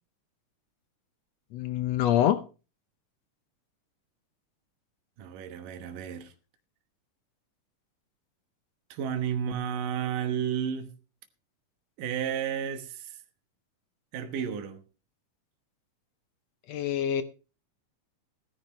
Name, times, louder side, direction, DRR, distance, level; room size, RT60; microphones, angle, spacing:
voice 1, 1.5-2.4 16.7-17.2, left 11 dB, 80° left, 1.5 m, -25 dB
voice 2, 5.2-6.3 8.9-10.9 12.0-13.2 14.1-14.8, right 8 dB, 80° right, 2.9 m, -32 dB
18.5 x 10.5 x 3.1 m
omnidirectional pair, 3.8 m